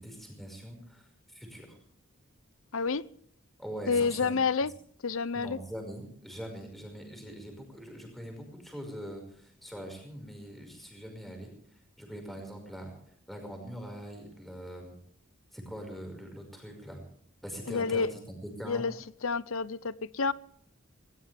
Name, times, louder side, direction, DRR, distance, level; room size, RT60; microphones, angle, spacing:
voice 1, 0.0-1.8 3.6-4.4 5.3-11.5 12.0-12.9 13.3-15.0 15.5-17.0 17.4-18.8, equal, ahead, 5.4 m, -42 dB
voice 2, 2.7-3.0 3.9-4.7 5.0-5.6 17.7-18.1 18.7-18.9 19.2-20.3, left 4 dB, 75° left, 0.7 m, -29 dB
20.5 x 19.0 x 3.5 m
head